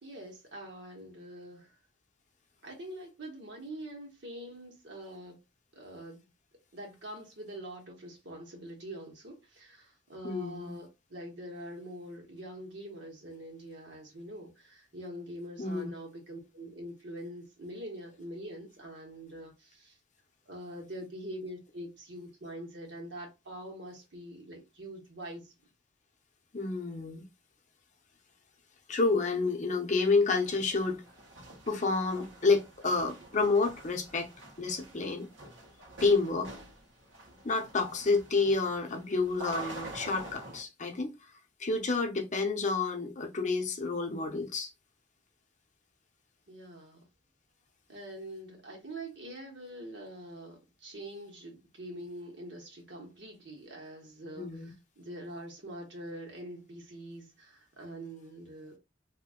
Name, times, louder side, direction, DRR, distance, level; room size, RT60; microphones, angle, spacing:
voice 1, 0.0-1.8 2.6-5.4 5.7-6.3 6.7-20.0 20.5-25.5 46.5-47.0 47.9-58.8, right 1 dB, 65° right, 1.4 m, -44 dB
voice 2, 10.2-10.8 15.6-15.9 26.5-27.3 28.9-31.0 31.7-34.3 34.6-35.3 36.0-36.5 37.4-41.2 41.6-44.7 54.4-54.7, left 3 dB, 40° left, 0.7 m, -29 dB
sound 1, 30.4-40.6, right 2 dB, 85° right, 1.3 m, -47 dB
2.8 x 2.7 x 3.6 m
head